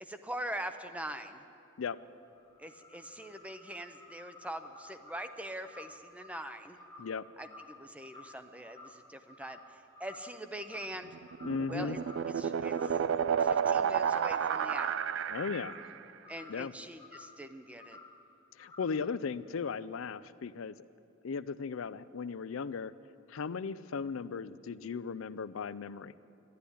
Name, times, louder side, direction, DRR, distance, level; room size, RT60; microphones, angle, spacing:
voice 1, 0.0-1.4 2.6-6.8 7.4-11.2 11.7-12.0 12.4-13.0 13.4-15.0 16.3-18.0, right 1 dB, 5° right, 9 dB, 0.6 m, -43 dB
sound 1, 2.0-9.7 9.9-10.3 10.6-11.7 11.9-12.3 12.6-13.1 13.3-14.5 14.7-16.7 17.0-17.4 17.8-18.2 18.6-19.1, left 3 dB, 20° left, 1.1 m, -53 dB
sound 2, 11.1-15.9, right 8 dB, 65° right, 0.4 m, -31 dB
voice 2, 11.4-12.0 15.3-15.7 16.5-16.7 18.6-20.8 21.2-22.9 23.3-26.1, left 5 dB, 80° left, 16 dB, 0.5 m, -36 dB
12.0 x 12.0 x 9.9 m, 2.7 s
head